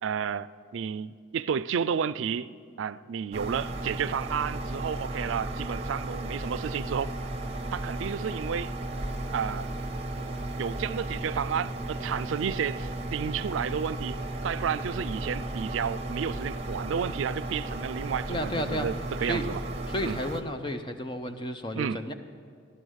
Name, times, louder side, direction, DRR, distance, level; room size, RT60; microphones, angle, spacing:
voice 1, 0.0-2.5 2.8-7.1 7.7-8.7 9.3-9.7 10.6-14.2 14.4-19.6 20.0-20.2 21.7-22.1, right 7 dB, 85° right, 0.4 m, -31 dB
sound 1, 3.3-20.4, right 1 dB, 35° right, 1.1 m, -35 dB
voice 2, 18.3-18.9 19.2-19.5 19.9-22.1, equal, 25° left, 0.7 m, -32 dB
14.0 x 11.0 x 6.3 m
head